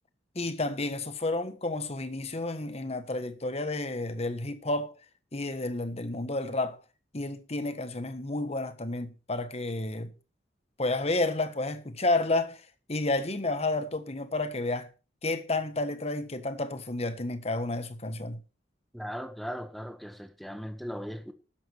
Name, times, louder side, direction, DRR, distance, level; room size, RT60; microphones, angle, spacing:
voice 1, 0.3-5.0 5.3-6.8 7.1-10.1 10.8-12.6 12.9-14.9 15.2-18.4, left 2 dB, 35° left, 1.4 m, -31 dB
voice 2, 18.9-21.3, equal, ahead, 1.5 m, -38 dB
13.0 x 10.5 x 4.6 m
head